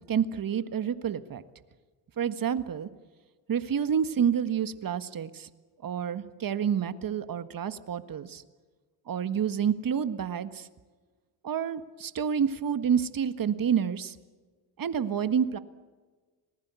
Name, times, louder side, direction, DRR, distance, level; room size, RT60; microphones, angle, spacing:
voice 1, 0.1-1.4 2.2-2.9 3.5-5.5 5.8-8.4 9.1-10.7 11.4-14.2 14.8-15.6, right 8 dB, 45° right, 11 dB, 1.7 m, -28 dB
27.5 x 19.5 x 8.3 m, 1.4 s
cardioid pair, 80°, 46 cm